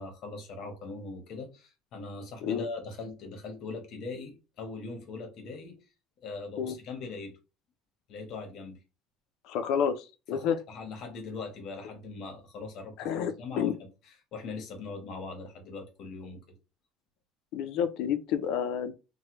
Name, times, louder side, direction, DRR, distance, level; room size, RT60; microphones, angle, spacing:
voice 1, 0.0-5.8 6.2-7.4 8.1-8.8 10.3-13.7 14.3-16.6, left 3 dB, 50° left, 1.0 m, -41 dB
voice 2, 9.4-10.6 13.0-13.8 17.5-18.9, left 8 dB, 65° left, 0.5 m, -30 dB
3.1 x 2.1 x 2.9 m
cardioid pair, 150°, 0 cm